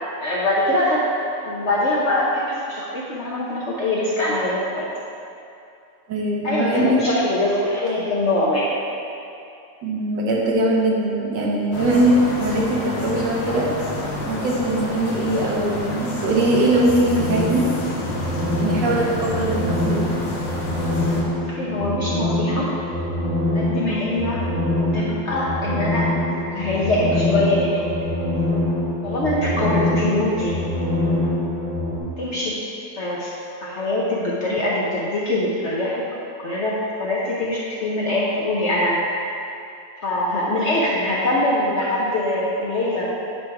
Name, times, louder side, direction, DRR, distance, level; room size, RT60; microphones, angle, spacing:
voice 1, 0.2-1.0 1.4-4.9 6.4-8.7 21.4-22.7 23.5-24.4 24.9-28.0 29.0-30.5 32.2-32.6 33.0-33.3 33.6-36.0 36.4-39.0 40.0-43.1, left 1 dB, 55° left, -6 dB, 0.8 m, -23 dB
voice 2, 6.1-7.0 9.8-13.7 14.3-17.7 18.6-20.1, right 1 dB, 75° right, -3 dB, 1.7 m, -21 dB
sound 1, 11.7-21.2, left 1 dB, 85° left, 1.7 m, -29 dB
sound 2, 16.7-32.0, left 1 dB, 20° left, 1.3 m, -24 dB
9.5 x 3.3 x 4.7 m, 2.6 s
omnidirectional pair, 2.0 m